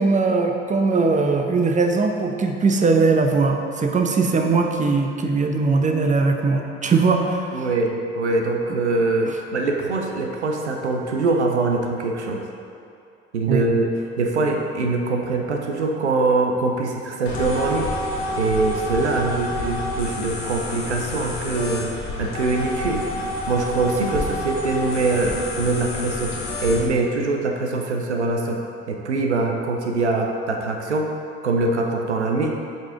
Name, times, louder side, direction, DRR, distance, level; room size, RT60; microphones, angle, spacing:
voice 1, 0.0-7.5 13.5-13.6, right 4 dB, 20° right, 4 dB, 0.7 m, -20 dB
voice 2, 7.5-12.4 13.3-17.9 18.4-21.9 22.2-23.1 23.5-26.4 26.6-28.6 28.9-31.1 31.4-32.5, right 3 dB, 90° right, 2 dB, 0.5 m, -23 dB
sound 1, 17.2-26.9, left 1 dB, 65° left, 1.2 m, -29 dB
7.7 x 5.0 x 3.6 m, 2.5 s
figure-of-eight pair, 50°, 33 cm